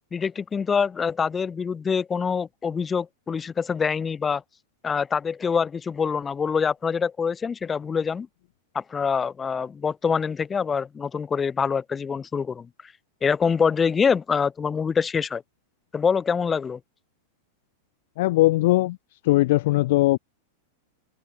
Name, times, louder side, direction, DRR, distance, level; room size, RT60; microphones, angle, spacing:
voice 1, 0.1-4.4 4.8-8.3 8.7-12.7 13.2-15.4 15.9-16.8, left 6 dB, 15° left, 2.6 m, -25 dB
voice 2, 18.2-19.0 19.2-20.2, left 18 dB, 50° left, 0.8 m, -19 dB
open air
figure-of-eight pair, 95°, 0 cm